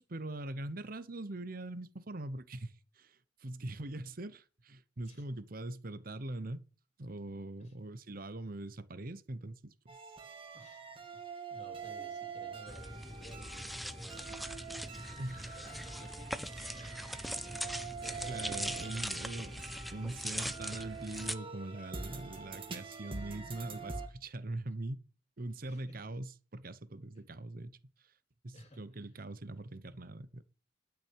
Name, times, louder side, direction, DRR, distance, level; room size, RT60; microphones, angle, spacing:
voice 1, 0.0-6.7 7.0-10.0 15.2-15.7 18.3-19.5 19.9-25.0 25.4-27.8 28.0-28.1 28.4-30.4, right 2 dB, 55° right, 1.0 m, -42 dB
sound 1, 9.9-24.1, right 5 dB, 30° right, 2.0 m, -45 dB
voice 2, 11.5-14.3 15.3-19.3 25.6-26.0 28.5-28.8, equal, 40° left, 3.5 m, -55 dB
sound 2, 12.7-21.3, equal, ahead, 0.6 m, -41 dB
11.5 x 6.2 x 6.4 m
head